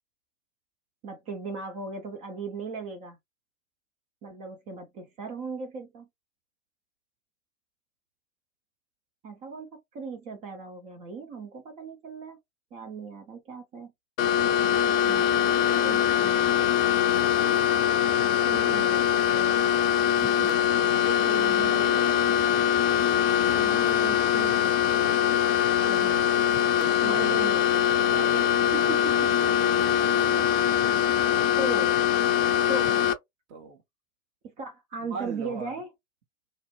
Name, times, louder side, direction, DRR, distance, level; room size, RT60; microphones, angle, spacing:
voice 1, 1.0-3.2 4.2-6.1 9.2-12.4 12.7-13.9 15.1-15.3 15.8-16.8 18.5-19.6 20.2-20.6 21.3-22.0 23.5-25.2 25.8-26.3 27.0-27.8 28.7-29.3 30.2-30.5 31.6-32.1 32.7-33.0 34.6-35.9, right 4 dB, 20° right, 0.3 m, -38 dB
sound 1, 14.2-33.1, left 10 dB, 45° left, 0.6 m, -23 dB
voice 2, 20.8-22.4 26.6-27.4 27.9-28.8 33.5-33.8 35.0-35.8, right 3 dB, 55° right, 1.0 m, -40 dB
2.5 x 2.0 x 2.9 m
figure-of-eight pair, 100°, 41 cm